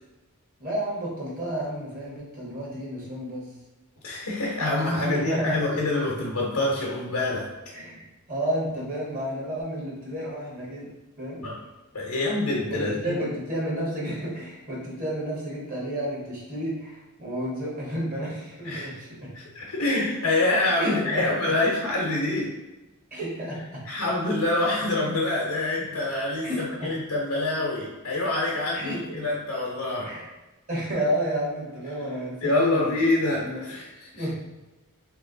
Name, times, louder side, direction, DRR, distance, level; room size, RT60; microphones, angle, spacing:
voice 1, 0.6-3.5 4.9-5.6 7.7-10.9 11.2-11.4 12.7-19.3 20.8-21.6 23.1-23.8 26.4-26.9 28.7-29.3 30.1-30.3 30.7-33.0 33.4-33.7 34.2-34.3, equal, 40° right, -5 dB, 1.2 m, -31 dB
voice 2, 4.0-7.5 11.4-11.6 11.9-13.2 18.6-18.9 19.5-22.5 23.9-30.1 32.4-34.2, left 2 dB, 80° left, -4 dB, 0.8 m, -26 dB
3.1 x 2.9 x 3.8 m, 1.1 s
head